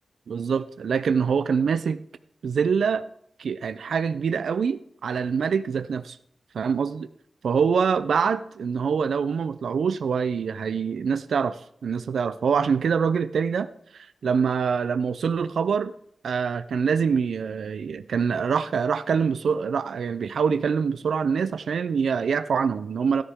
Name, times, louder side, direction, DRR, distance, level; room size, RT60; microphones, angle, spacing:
voice 1, 0.3-2.0 2.4-3.1 3.4-6.2 6.5-7.1 7.4-13.7 13.9-15.9 16.2-23.2, right 6 dB, 85° right, 12 dB, 0.4 m, -25 dB
14.0 x 12.5 x 3.6 m, 0.69 s
wide cardioid pair, 155°, 0 cm